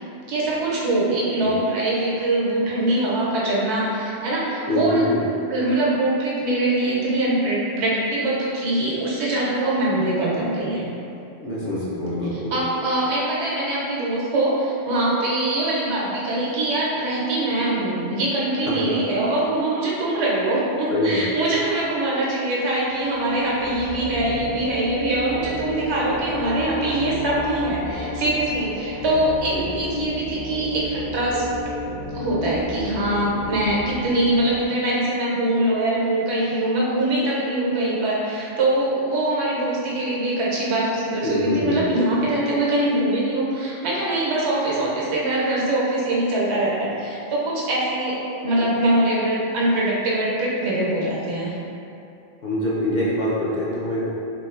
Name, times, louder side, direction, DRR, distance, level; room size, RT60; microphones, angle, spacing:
voice 1, 0.3-5.2 5.5-10.9 12.3-31.4 32.1-51.5, right 1 dB, 85° right, -6 dB, 1.0 m, -23 dB
voice 2, 4.7-5.2 11.4-12.5 18.8-18.9 20.9-21.3 29.5-29.6 41.2-41.8 52.4-54.1, left 1 dB, 55° left, -8 dB, 0.6 m, -24 dB
sound 1, 23.1-34.6, left 1 dB, 80° left, 1.3 m, -32 dB
3.0 x 2.5 x 2.4 m, 2.7 s
omnidirectional pair, 1.1 m